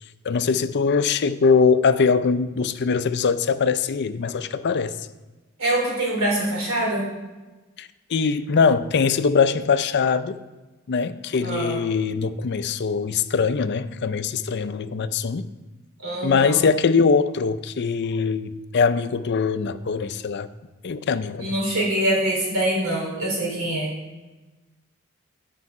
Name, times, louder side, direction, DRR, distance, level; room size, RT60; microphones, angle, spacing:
voice 1, 0.2-4.9 7.8-10.4 10.9-15.5 16.2-20.5 20.8-21.6, left 5 dB, 50° left, 0.4 m, -22 dB
voice 2, 5.6-7.1 11.4-11.8 16.0-16.6 21.4-23.9, right 1 dB, 70° right, 3.3 m, -24 dB
12.5 x 5.5 x 4.8 m
head